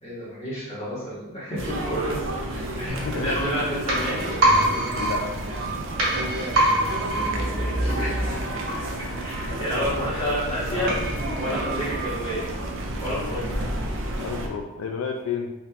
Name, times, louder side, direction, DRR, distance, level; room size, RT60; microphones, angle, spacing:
voice 1, 0.0-2.2 2.5-4.3 6.8-8.5 9.2-11.0 11.4-12.5 13.0-13.5, equal, 30° left, -9 dB, 1.4 m, -30 dB
sound 1, 1.6-14.5, right 1 dB, 65° right, 0.5 m, -31 dB
sound 2, 2.9-12.6 12.9-13.0, right 1 dB, 85° right, 1.0 m, -27 dB
voice 2, 4.9-5.4 13.1-13.4 14.2-15.5, left 6 dB, 80° left, 3 dB, 0.3 m, -31 dB
3.5 x 2.8 x 2.8 m, 0.96 s
head